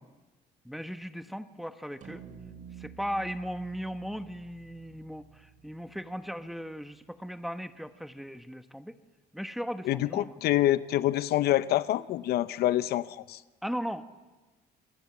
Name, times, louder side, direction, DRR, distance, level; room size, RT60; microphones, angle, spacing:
voice 1, 0.6-2.2 2.8-9.0 9.3-10.3 13.6-14.1, equal, ahead, 9 dB, 1.2 m, -37 dB
sound 1, 2.0-6.5, right 7 dB, 50° right, 2.7 m, -50 dB
voice 2, 9.9-13.4, left 14 dB, 70° left, 15 dB, 0.7 m, -26 dB
27.5 x 20.0 x 7.3 m, 1.2 s
cardioid pair, 110°, 17 cm